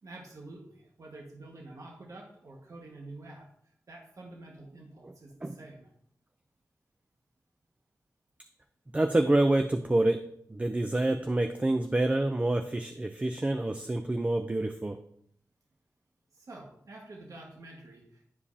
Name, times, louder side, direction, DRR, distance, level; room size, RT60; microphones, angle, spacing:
voice 1, 0.0-3.5 3.9-5.9 16.3-18.2, right 2 dB, 65° right, -1 dB, 1.6 m, -48 dB
voice 2, 8.9-10.3 10.5-15.0, right 1 dB, 20° right, 6 dB, 0.5 m, -27 dB
11.0 x 5.2 x 2.8 m, 0.67 s
wide cardioid pair, 75°, 6 cm